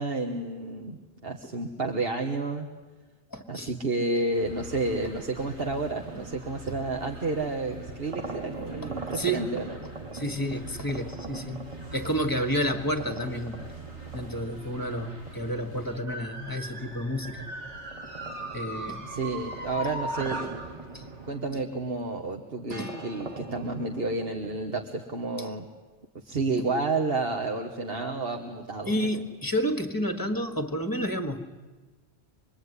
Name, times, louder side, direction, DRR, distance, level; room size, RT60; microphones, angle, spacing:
voice 1, 0.0-2.7 3.5-9.7 19.1-20.5 21.2-25.7 26.2-29.1, right 3 dB, 55° right, 2 dB, 1.7 m, -30 dB
voice 2, 3.3-3.7 8.8-9.6 10.1-13.6 14.1-17.5 18.5-19.1 20.9-21.1 22.7-22.9 25.4-25.5 28.9-31.5, equal, 15° left, 7 dB, 1.7 m, -30 dB
sound 1, 4.3-16.0, right 2 dB, 70° right, 7.0 m, -45 dB
sound 2, 5.2-16.7 17.2-24.9, right 3 dB, 30° right, 1.1 m, -44 dB
sound 3, 16.1-21.6 22.7-24.3, right 1 dB, 85° right, 2.5 m, -39 dB
25.5 x 22.0 x 9.8 m, 1.3 s
omnidirectional pair, 1.2 m